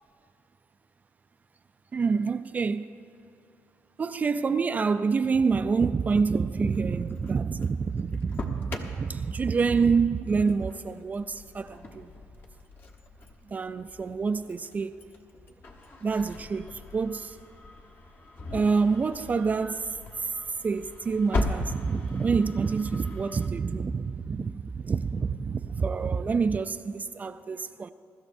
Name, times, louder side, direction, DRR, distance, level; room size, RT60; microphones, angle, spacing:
voice 1, 1.9-2.9 4.0-12.1 13.5-15.0 16.0-17.4 18.5-19.9 20.6-27.9, right 5 dB, 30° right, 0.3 m, -27 dB
Engine starting, 6.5-23.5, left 2 dB, 40° left, 1.2 m, -39 dB
22.5 x 13.0 x 2.6 m
cardioid pair, 110°, 5 cm